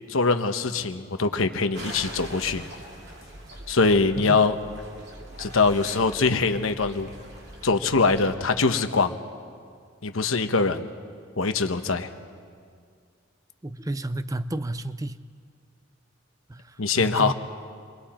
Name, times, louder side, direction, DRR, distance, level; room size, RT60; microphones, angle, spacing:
voice 1, 0.1-2.6 3.7-4.6 5.4-7.1 7.6-9.2 10.0-10.9 11.4-12.1 16.8-17.3, left 4 dB, 85° left, 8 dB, 1.0 m, -23 dB
sound 1, 1.7-8.4, right 1 dB, 50° right, 2.7 m, -42 dB
voice 2, 13.6-15.2 16.5-16.6 17.0-17.3, right 1 dB, 15° right, 13 dB, 0.5 m, -31 dB
28.0 x 23.0 x 4.4 m, 2.1 s
head